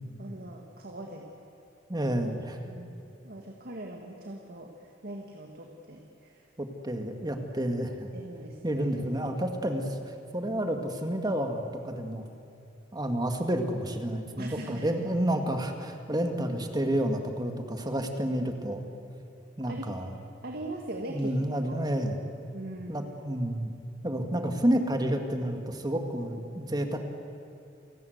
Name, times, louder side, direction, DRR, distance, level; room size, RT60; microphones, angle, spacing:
voice 1, 0.2-1.3 2.6-3.0 3.2-6.5 8.1-9.3 14.4-14.9 19.7-19.9 20.4-21.8 22.5-23.2, right 1 dB, 55° right, 2 dB, 2.0 m, -41 dB
voice 2, 1.9-2.6 6.6-8.1 8.6-12.2 12.9-18.8 19.6-20.1 21.1-22.2 22.9-23.7 24.0-27.0, right 1 dB, 20° right, 5 dB, 1.9 m, -30 dB
29.0 x 18.0 x 8.0 m, 2.6 s
head